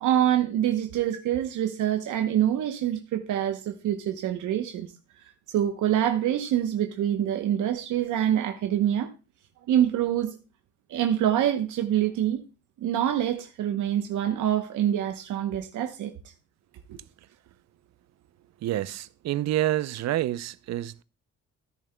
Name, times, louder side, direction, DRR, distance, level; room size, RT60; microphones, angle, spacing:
voice 1, 0.0-4.9 5.5-9.1 9.7-10.4 10.9-12.4 12.8-16.1, right 11 dB, 80° right, 0.9 m, -25 dB
voice 2, 18.6-21.0, right 14 dB, 60° right, 0.5 m, -28 dB
13.5 x 10.5 x 2.2 m
cardioid pair, 90°, 30 cm